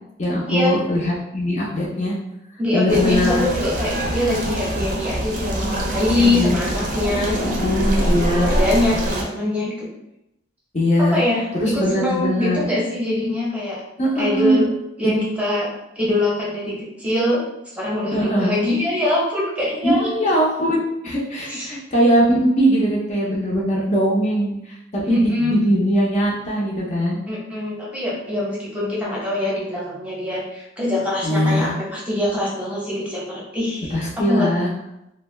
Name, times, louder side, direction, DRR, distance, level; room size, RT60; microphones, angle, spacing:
voice 1, 0.2-2.1 2.7-3.4 6.2-6.6 7.4-8.5 10.7-11.2 11.5-12.7 14.0-14.6 15.0-15.2 18.1-18.6 19.8-24.5 24.9-27.2 31.2-31.7 33.9-34.7, equal, 35° left, -4 dB, 0.6 m, -20 dB
voice 2, 2.6-7.7 8.3-9.9 11.0-13.8 14.2-14.7 15.0-17.4 17.8-20.1 21.5-21.7 25.1-25.6 27.3-34.5, left 2 dB, 5° right, -6 dB, 0.7 m, -23 dB
sound 1, 2.9-9.2, equal, 45° right, 0.5 m, -24 dB
2.5 x 2.2 x 3.1 m, 0.85 s
head